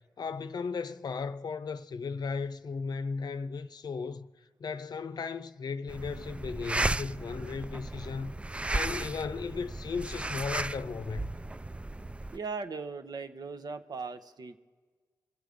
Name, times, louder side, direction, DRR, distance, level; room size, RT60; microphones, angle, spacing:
voice 1, 0.2-4.3 4.6-8.3 8.7-11.3, left 5 dB, 65° left, 0.6 m, -36 dB
sound 1, 5.9-12.4, right 2 dB, 15° right, 0.3 m, -35 dB
voice 2, 12.3-14.6, right 4 dB, 60° right, 0.9 m, -38 dB
23.5 x 8.1 x 5.1 m
cardioid pair, 45°, 8 cm